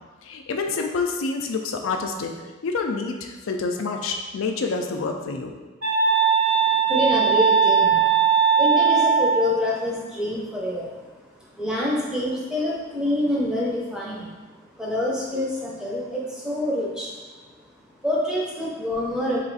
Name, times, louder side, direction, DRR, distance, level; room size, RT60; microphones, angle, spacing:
voice 1, 0.2-2.3 2.6-5.5, left 4 dB, 80° left, 3 dB, 0.4 m, -27 dB
sound 1, 5.8-9.5, right 7 dB, 90° right, 1.0 m, -19 dB
voice 2, 6.6-11.1 11.5-17.1 17.4-17.5 18.0-19.4, left 1 dB, 5° right, -6 dB, 0.6 m, -26 dB
3.1 x 2.5 x 3.9 m, 1.3 s
head